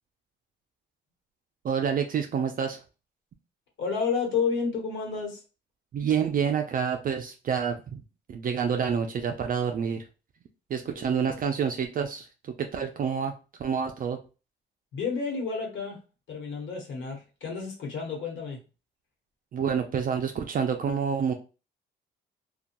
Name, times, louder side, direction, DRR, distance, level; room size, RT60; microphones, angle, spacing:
voice 1, 1.6-2.8 5.9-8.0 8.3-10.0 10.7-13.3 13.6-14.2 19.5-21.3, right 7 dB, 45° right, 5 dB, 0.4 m, -28 dB
voice 2, 3.8-5.4 10.8-11.2 14.9-16.0 16.3-18.6, left 5 dB, 70° left, 0 dB, 1.1 m, -31 dB
2.8 x 2.2 x 2.5 m, 0.32 s
cardioid pair, 90°, 20 cm